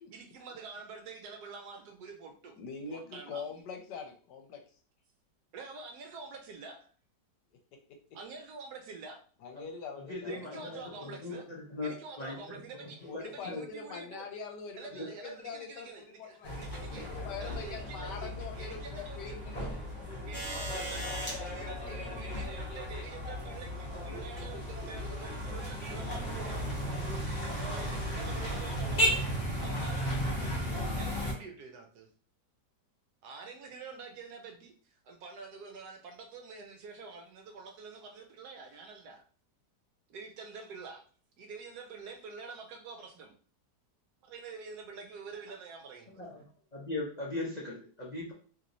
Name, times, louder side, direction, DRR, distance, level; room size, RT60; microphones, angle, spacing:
voice 1, 0.1-2.6 2.9-3.5 5.5-6.9 8.1-9.2 10.3-11.4 11.8-14.3 14.7-19.4 20.2-27.0 27.7-29.2 29.6-30.6 30.9-32.1 33.2-39.2 40.1-41.1 41.4-43.4 44.2-46.2, right 4 dB, 70° right, 4 dB, 1.1 m, -47 dB
voice 2, 2.6-4.6 9.4-11.0 13.0-16.6 16.9-19.7, left 5 dB, 75° left, 4 dB, 1.3 m, -43 dB
voice 3, 10.1-11.4 11.7-12.4 12.8-13.6 15.0-15.1 46.2-46.4 46.7-48.3, left 2 dB, 60° left, -5 dB, 0.4 m, -39 dB
sound 1, 16.4-31.3, equal, 35° left, 0.9 m, -35 dB
sound 2, 18.3-28.7, equal, 40° right, 1.3 m, -54 dB
sound 3, 20.3-21.4 22.8-22.9 24.2-24.5 25.4-25.5, right 1 dB, 10° right, 1.0 m, -38 dB
3.1 x 3.0 x 2.6 m, 0.42 s
omnidirectional pair, 1.9 m